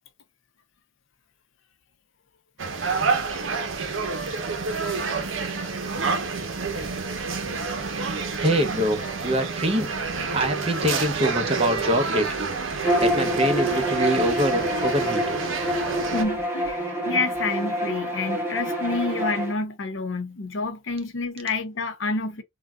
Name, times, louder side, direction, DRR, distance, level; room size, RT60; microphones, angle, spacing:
sound 1, 2.6-16.2, right 4 dB, 75° right, 0.8 m, -28 dB
voice 1, 8.4-9.9 10.3-12.5 13.0-15.2, equal, 30° right, 0.8 m, -24 dB
Bowed string instrument, 12.8-19.5, equal, 10° right, 1.2 m, -26 dB
voice 2, 16.1-22.4, left 3 dB, 70° left, 0.7 m, -28 dB
3.9 x 2.3 x 2.3 m
head